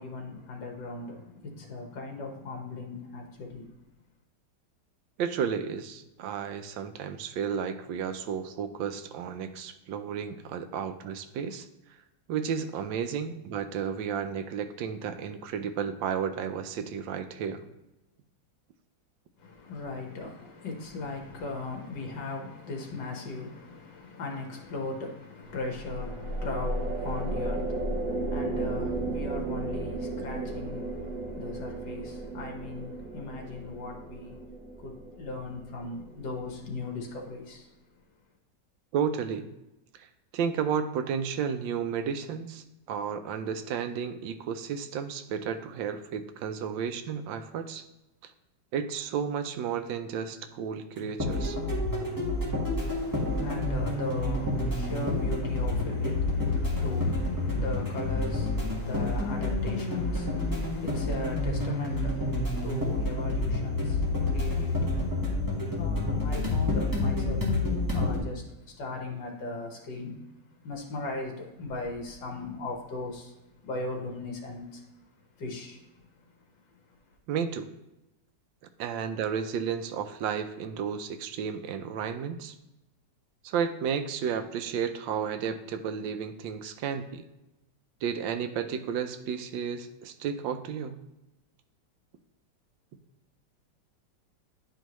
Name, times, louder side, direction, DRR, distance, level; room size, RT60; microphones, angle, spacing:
voice 1, 0.0-3.7 19.4-34.4 34.8-37.7 52.9-70.3 70.6-73.3 73.6-74.8 75.4-76.3 76.7-76.8, left 3 dB, 70° left, 1 dB, 1.9 m, -38 dB
voice 2, 5.2-11.7 12.3-17.6 38.9-39.5 39.9-40.1 40.3-47.8 48.2-48.3 48.7-51.6 77.3-77.7 78.8-82.5 83.4-87.3 88.0-91.0, right 7 dB, 85° right, 9 dB, 1.3 m, -32 dB
sound 1, 25.5-36.9, right 2 dB, 65° right, 1.4 m, -35 dB
sound 2, 51.0-68.2, left 2 dB, 10° right, 1.2 m, -29 dB
10.0 x 4.5 x 3.0 m, 0.96 s
omnidirectional pair, 2.0 m